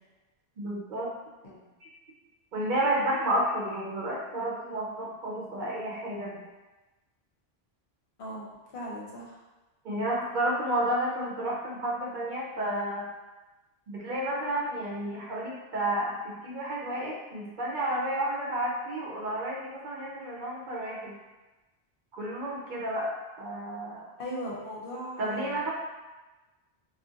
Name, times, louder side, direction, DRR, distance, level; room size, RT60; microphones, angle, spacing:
voice 1, 0.6-1.1 1.8-1.9 2.5-6.4 9.8-13.1 13.9-21.1 22.1-23.1 23.4-24.1 25.2-25.7, right 1 dB, 60° right, -4 dB, 0.6 m, -31 dB
voice 2, 8.2-9.4 24.2-25.6, equal, 65° left, -4 dB, 0.8 m, -38 dB
2.4 x 2.1 x 3.7 m, 1.1 s
omnidirectional pair, 1.1 m